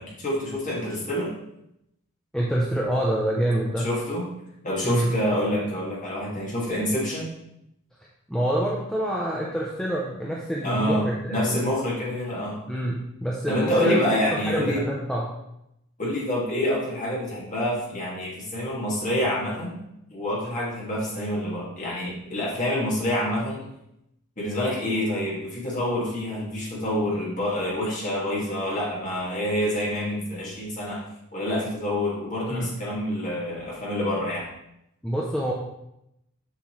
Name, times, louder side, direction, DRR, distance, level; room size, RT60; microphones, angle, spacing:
voice 1, 0.0-1.3 3.8-4.3 4.6-7.3 10.6-12.6 13.5-14.8 16.0-19.8 20.1-23.6 24.4-31.0 31.3-34.4, left 1 dB, 35° left, -5 dB, 2.2 m, -27 dB
voice 2, 2.3-3.9 4.8-5.2 8.3-11.7 12.7-14.0 14.5-15.3 32.5-32.7 35.0-35.5, right 1 dB, 5° left, -4 dB, 0.6 m, -26 dB
7.2 x 5.7 x 3.2 m, 0.82 s
head